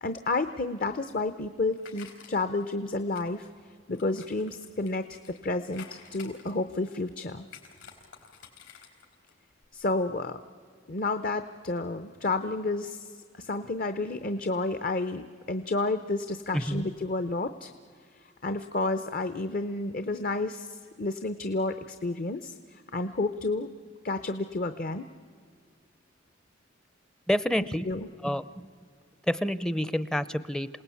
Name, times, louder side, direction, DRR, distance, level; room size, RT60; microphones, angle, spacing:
voice 1, 0.0-3.5 3.9-7.4 9.7-10.4 10.9-13.1 13.3-17.7 18.4-23.7 24.0-25.1 27.9-28.1, left 2 dB, 45° left, 11 dB, 0.7 m, -31 dB
sound 1, 1.0-2.6 3.1-5.4 5.7-7.1 7.5-9.3 9.6-9.7, left 6 dB, 75° left, 4.4 m, -51 dB
voice 2, 16.5-16.9 27.3-27.9 28.2-28.7 29.3-30.7, equal, 5° left, 15 dB, 0.5 m, -28 dB
28.0 x 18.5 x 8.5 m, 2.1 s
head